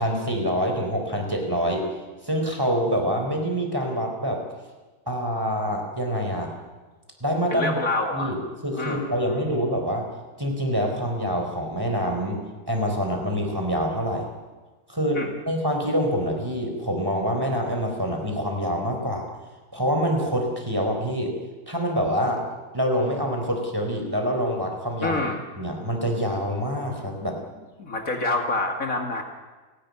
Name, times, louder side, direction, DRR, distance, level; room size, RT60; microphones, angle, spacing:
voice 1, 0.0-1.8 2.2-4.4 5.1-6.6 7.2-7.9 8.1-10.1 10.4-12.4 12.7-14.3 14.9-19.3 19.7-21.3 21.7-22.4 22.7-25.2 25.6-27.4, equal, 10° right, 2 dB, 4.0 m, -26 dB
voice 2, 7.5-8.4 8.8-9.2 15.1-15.3 25.0-25.4 27.8-29.2, left 2 dB, 50° left, 3 dB, 2.4 m, -27 dB
29.5 x 12.0 x 9.5 m, 1.3 s
omnidirectional pair, 1.9 m